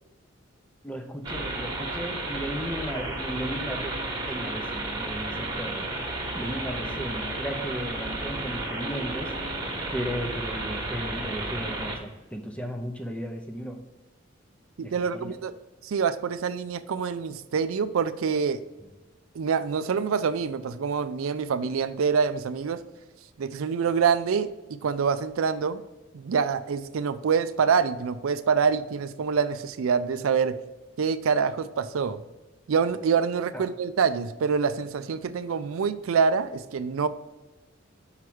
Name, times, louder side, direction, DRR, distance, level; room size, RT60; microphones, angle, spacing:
voice 1, 0.8-4.0 4.3-5.9 6.3-9.3 9.9-13.8 14.8-15.3 18.8-18.9 33.5-33.7, equal, 5° left, 4 dB, 0.6 m, -35 dB
sound 1, 1.2-12.0, right 2 dB, 20° right, 1.2 m, -32 dB
voice 2, 14.8-15.5 15.8-18.6 19.3-22.8 23.4-25.8 26.1-30.6 31.0-32.2 32.7-37.1, right 6 dB, 80° right, 13 dB, 0.4 m, -26 dB
5.7 x 4.8 x 6.1 m, 1.1 s
head